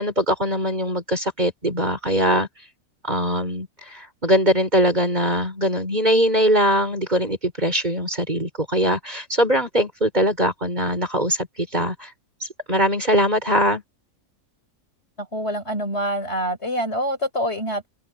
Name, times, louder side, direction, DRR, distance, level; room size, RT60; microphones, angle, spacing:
voice 1, 0.0-2.5 3.0-12.1 12.7-13.8, equal, 30° right, 4.7 m, -21 dB
voice 2, 15.2-17.9, equal, 50° left, 5.3 m, -26 dB
omnidirectional pair, 1.5 m